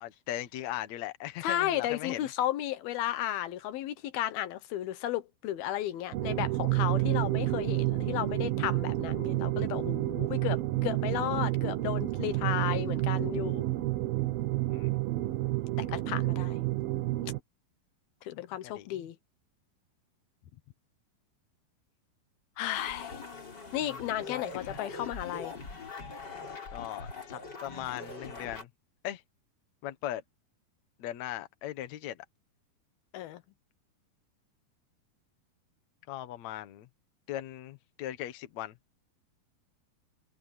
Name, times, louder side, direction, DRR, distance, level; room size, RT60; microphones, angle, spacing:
voice 1, 0.0-2.3 14.7-15.0 18.3-18.4 18.7-19.1 24.3-24.8 26.7-28.7 29.0-29.2 29.8-30.2 31.0-32.2 36.1-36.9 37.3-38.7, left 13 dB, 60° left, 2.2 m, -39 dB
voice 2, 1.4-13.6 15.8-16.6 18.2-19.2 22.6-23.2 23.7-25.5 33.1-33.4, left 12 dB, 85° left, 3.0 m, -34 dB
sound 1, 6.1-17.4, right 18 dB, 85° right, 2.9 m, -30 dB
sound 2, 22.7-28.6, left 4 dB, 30° left, 4.5 m, -42 dB
omnidirectional pair, 4.3 m